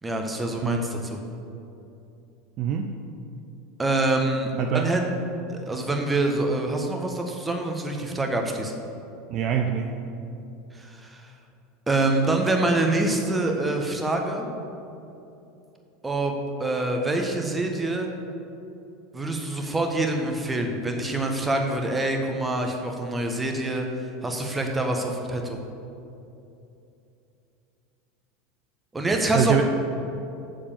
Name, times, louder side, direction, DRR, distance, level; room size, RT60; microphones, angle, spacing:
voice 1, 0.0-1.2 3.8-5.0 5.5-8.7 10.7-11.3 11.9-14.5 16.0-16.3 16.6-18.1 19.1-25.6 28.9-29.6, right 2 dB, 15° right, 3 dB, 1.3 m, -26 dB
voice 2, 2.6-3.0 4.6-4.9 9.3-9.9 29.3-29.6, right 8 dB, 45° right, 4 dB, 0.6 m, -24 dB
7.6 x 7.0 x 6.8 m, 2.8 s
figure-of-eight pair, 80°, 0 cm